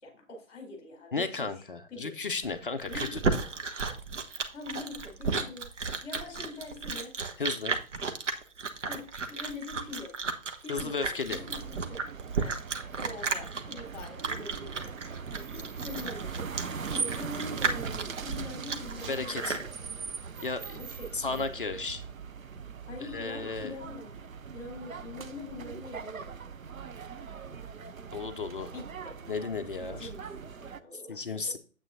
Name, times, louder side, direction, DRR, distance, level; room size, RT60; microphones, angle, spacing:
voice 1, 0.0-1.5 1.9-2.1 2.9-3.2 4.5-5.7 6.0-7.1 8.6-10.2 10.6-12.0 12.4-12.5 13.0-16.5 16.8-19.7 20.7-21.6 22.9-24.1 24.5-26.3 28.3-29.2 29.8-31.6, left 3 dB, 20° left, 0 dB, 3.9 m, -44 dB
voice 2, 1.1-3.2 5.3-5.4 7.4-7.8 10.7-11.4 19.1-19.6 20.4-20.8 21.1-22.0 23.1-23.7 28.1-28.7 29.3-30.1 30.9-31.6, left 4 dB, 40° left, 8 dB, 0.6 m, -34 dB
Chewing mastication, 2.4-19.7, right 4 dB, 60° right, 1.1 m, -33 dB
sound 1, 11.3-30.8, right 6 dB, 75° right, 0.7 m, -40 dB
8.9 x 8.0 x 2.7 m, 0.36 s
figure-of-eight pair, 140°, 41 cm